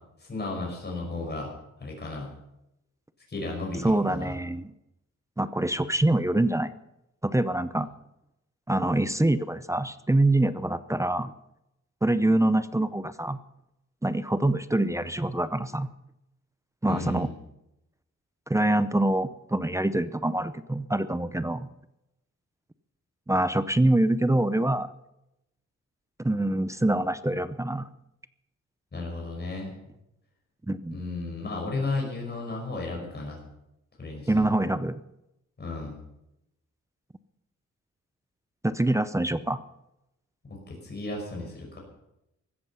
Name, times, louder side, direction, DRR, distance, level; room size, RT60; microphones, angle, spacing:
voice 1, 0.2-1.5 1.8-2.3 3.3-4.3 16.9-17.3 28.9-29.7 30.9-33.4 34.0-34.5 35.6-35.9 40.5-41.8, left 3 dB, 35° left, -1 dB, 5.4 m, -34 dB
voice 2, 3.8-4.7 5.4-6.7 7.2-7.9 8.7-11.3 12.0-13.4 14.0-15.9 16.8-17.3 18.5-21.7 23.3-24.9 26.2-27.9 30.7-31.0 34.3-35.0 38.6-39.6, right 1 dB, 10° right, 13 dB, 0.6 m, -25 dB
16.0 x 13.5 x 5.6 m, 0.85 s
wide cardioid pair, 135°, 30 cm